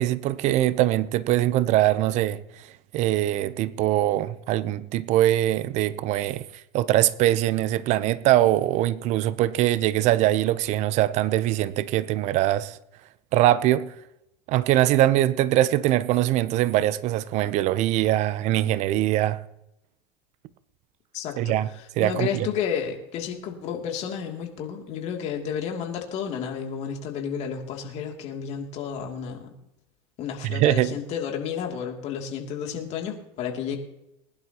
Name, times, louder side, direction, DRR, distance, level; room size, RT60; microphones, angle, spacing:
voice 1, 0.0-2.4 2.9-6.4 6.7-12.8 13.3-13.9 14.5-19.4 21.4-21.7 22.0-22.5 30.4-31.0, right 14 dB, 50° right, 0.8 m, -22 dB
voice 2, 21.1-21.5 22.0-29.5 30.2-33.8, left 7 dB, 50° left, 2.8 m, -31 dB
20.5 x 11.0 x 3.0 m
hypercardioid pair, 100°, 15 cm